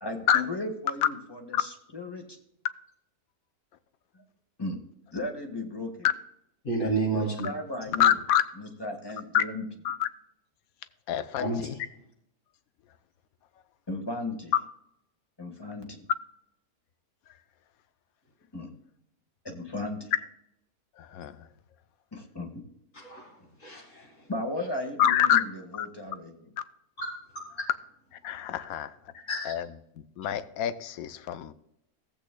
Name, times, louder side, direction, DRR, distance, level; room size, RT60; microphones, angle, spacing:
voice 1, 0.0-2.2 4.1-4.2 4.6-4.8 5.1-6.1 7.1-8.2 8.5-9.7 13.9-14.5 15.4-16.0 18.5-18.7 19.4-20.1 22.1-22.6 24.3-26.5, left 2 dB, 15° left, 2 dB, 1.5 m, -36 dB
voice 2, 6.6-7.5 11.4-11.8 22.9-24.3 27.0-27.4 28.5-28.7 29.3-29.5, right 2 dB, 55° left, -2 dB, 2.1 m, -32 dB
voice 3, 8.0-8.4 9.3-9.4 9.8-10.1 11.1-11.7 21.1-21.3 25.0-25.4 25.8-25.9 28.2-28.9 29.5-29.7 30.2-31.5, left 10 dB, 75° left, 13 dB, 1.1 m, -25 dB
16.0 x 8.3 x 2.2 m, 0.77 s
omnidirectional pair, 1.6 m